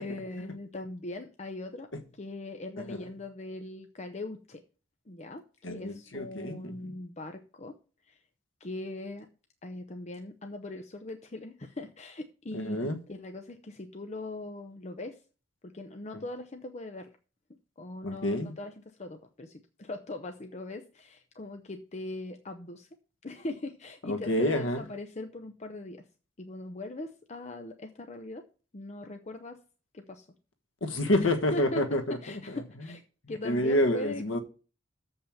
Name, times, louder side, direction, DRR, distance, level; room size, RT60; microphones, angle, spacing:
voice 1, 0.0-1.9 2.1-4.6 5.1-7.7 8.1-8.2 8.6-9.3 9.6-15.2 15.6-17.1 17.8-22.9 23.2-26.0 26.4-28.4 28.7-29.6 29.9-30.3 31.5-31.8 32.1-33.0 33.3-34.2, left 2 dB, 35° left, 0.8 m, -40 dB
voice 2, 5.6-6.7 12.5-13.0 18.0-18.5 24.1-24.8 30.8-32.2 33.4-34.4, left 1 dB, 80° left, 1.4 m, -28 dB
7.4 x 5.5 x 7.1 m
head